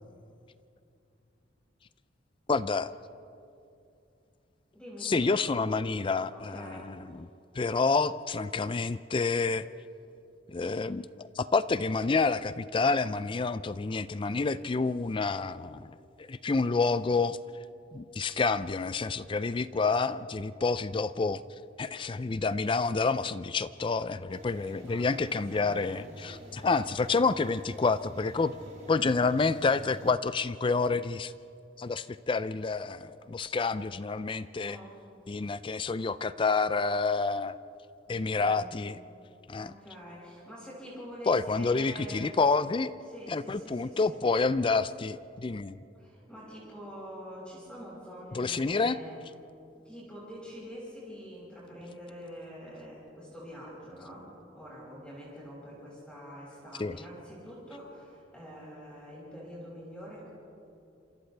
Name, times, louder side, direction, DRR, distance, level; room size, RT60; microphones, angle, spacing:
voice 1, 2.5-2.9 5.0-7.0 7.5-9.7 10.5-15.9 16.2-17.4 17.9-21.4 21.8-28.5 28.9-31.3 31.8-34.8 35.3-37.5 38.1-39.0 39.5-39.7 41.3-42.9 43.3-45.8 48.3-49.0 56.8-57.0, left 4 dB, 25° left, 15 dB, 0.4 m, -28 dB
voice 2, 4.7-5.4 6.3-6.9 24.9-26.0 34.6-35.0 38.1-38.8 39.5-42.4 43.1-44.2 46.0-49.2 49.8-54.3 54.5-60.3, equal, 5° left, -7 dB, 6.4 m, -45 dB
sound 1, 24.3-30.1, equal, 40° right, 2.7 m, -48 dB
28.0 x 27.0 x 3.4 m, 2.6 s
head